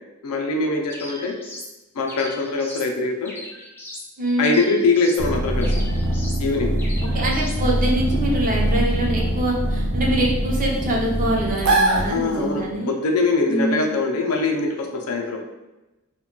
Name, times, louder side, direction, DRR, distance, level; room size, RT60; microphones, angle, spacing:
voice 1, 0.2-1.3 2.0-3.3 4.4-5.7 6.4-6.7 12.1-15.4, left 3 dB, 85° left, 2 dB, 0.4 m, -22 dB
sound 1, 0.9-1.7 2.1-2.9 3.2-4.1 4.4-5.3 5.6-6.4 6.8-7.6, left 1 dB, 10° left, 0.4 m, -38 dB
voice 2, 4.2-4.6 7.1-12.9 13.5-13.9, right 1 dB, 40° right, -2 dB, 0.6 m, -24 dB
sound 2, 5.2-12.7, right 1 dB, 85° right, 0.6 m, -23 dB
2.2 x 2.2 x 3.7 m, 1.0 s
head